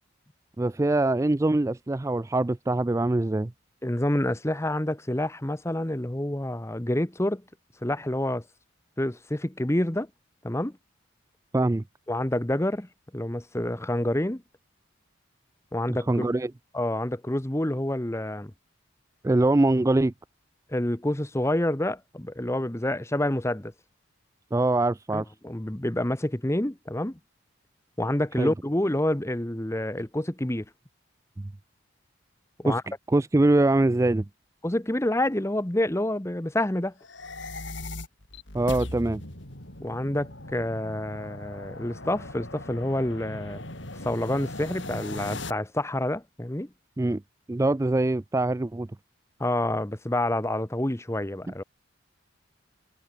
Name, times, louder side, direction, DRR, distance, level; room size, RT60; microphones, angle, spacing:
voice 1, 0.6-3.5 11.5-11.8 15.9-16.5 19.2-20.1 24.5-25.2 28.4-28.5 31.4-31.5 32.7-32.8 33.1-34.2 38.5-39.2 47.0-47.2 47.5-48.9, right 2 dB, 15° right, 0.3 m, -23 dB
voice 2, 3.8-7.4 7.8-8.4 9.0-10.1 10.4-10.7 12.1-14.4 15.7-16.3 16.7-18.5 20.7-23.7 25.1-27.2 28.0-30.6 32.6-32.8 34.6-36.9 39.8-43.6 43.9-46.7 49.4-51.6, left 1 dB, 15° left, 0.9 m, -28 dB
sound 1, 37.0-45.5, left 2 dB, 60° left, 5.5 m, -39 dB
head